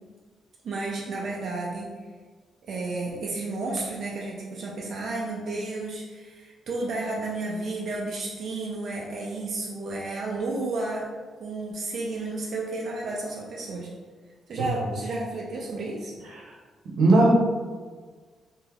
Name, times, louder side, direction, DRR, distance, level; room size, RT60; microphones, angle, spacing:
voice 1, 0.6-1.9 2.7-11.1 11.4-13.9 14.5-16.1, right 2 dB, 50° right, -3 dB, 0.4 m, -32 dB
voice 2, 16.9-17.3, right 2 dB, 90° right, -3 dB, 0.7 m, -19 dB
3.3 x 2.6 x 2.3 m, 1.5 s
wide cardioid pair, 170°, 0 cm